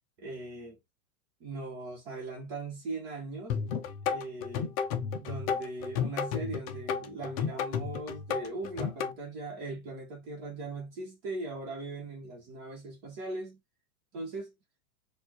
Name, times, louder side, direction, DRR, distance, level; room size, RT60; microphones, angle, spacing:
voice 1, 0.2-0.8 1.4-3.6 4.1-4.8 5.2-13.6 14.1-14.5, right 2 dB, 35° right, 1.4 m, -39 dB
sound 1, 3.5-9.1, left 7 dB, 30° left, 0.5 m, -32 dB
4.4 x 2.6 x 3.0 m
supercardioid pair, 155°, 42 cm